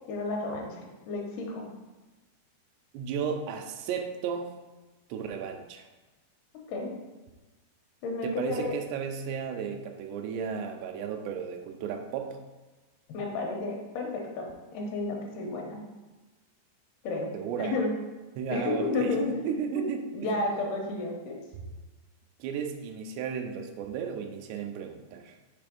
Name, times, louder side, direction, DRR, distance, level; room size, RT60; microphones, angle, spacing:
voice 1, 0.1-0.8 1.1-1.6 6.7-6.9 8.0-8.8 13.1-15.8 17.0-17.3 17.6-17.9 18.5-19.4 19.7-19.9 20.1-21.4, left 2 dB, 80° left, 1 dB, 2.8 m, -31 dB
voice 2, 2.9-4.5 5.1-5.9 8.2-12.4 17.3-17.7 18.4-19.2 19.4-20.3 22.4-25.3, right 7 dB, 85° right, 5 dB, 2.8 m, -34 dB
6.8 x 3.3 x 5.1 m, 1.2 s
omnidirectional pair, 4.8 m